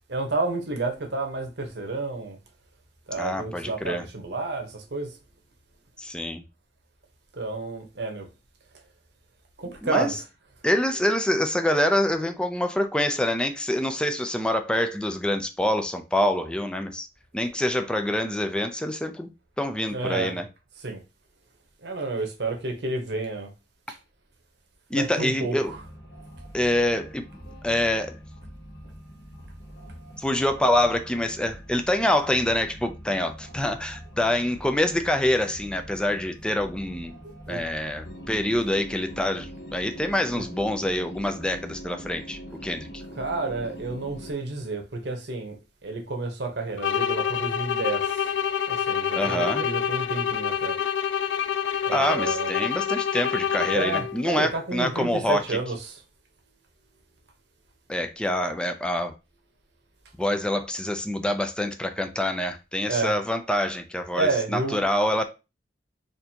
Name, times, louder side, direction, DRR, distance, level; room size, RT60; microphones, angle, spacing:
voice 1, 0.1-2.4 3.1-5.1 7.3-8.3 9.6-10.1 19.9-20.4 20.8-21.0 21.8-23.5 23.9-24.0 24.9-25.9 37.2-37.6 40.3-40.4 43.1-48.0 48.7-50.8 51.8-52.5 53.7-56.0 62.9-63.2 64.1-64.9, right 3 dB, 70° right, 1.0 m, -30 dB
voice 2, 3.2-4.1 6.0-6.4 9.8-10.1 10.6-17.1 17.3-19.3 19.6-20.5 24.9-25.7 26.5-27.2 27.6-28.2 30.2-37.2 37.5-43.0 49.1-49.6 51.9-55.6 57.9-59.1 60.2-65.2, left 1 dB, 5° left, 0.4 m, -26 dB
sound 1, 25.6-44.3, equal, 70° left, 1.0 m, -43 dB
sound 2, 46.8-54.3, left 8 dB, 90° left, 0.3 m, -27 dB
4.3 x 2.7 x 2.8 m
head